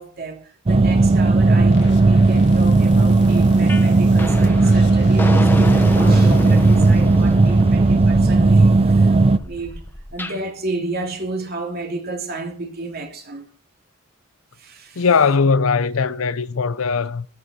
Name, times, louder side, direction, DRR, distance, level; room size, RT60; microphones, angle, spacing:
voice 1, 0.0-13.5 14.6-15.0, right 2 dB, 45° right, 2.8 m, -32 dB
sound 1, 0.7-9.4, right 3 dB, 30° right, 0.5 m, -15 dB
sound 2, 1.6-7.7, left 1 dB, 55° left, 1.9 m, -35 dB
sound 3, 3.7-3.9 4.2-10.4, equal, 10° left, 1.2 m, -27 dB
voice 2, 15.0-17.3, left 5 dB, 75° left, 0.6 m, -19 dB
17.0 x 9.4 x 4.2 m
head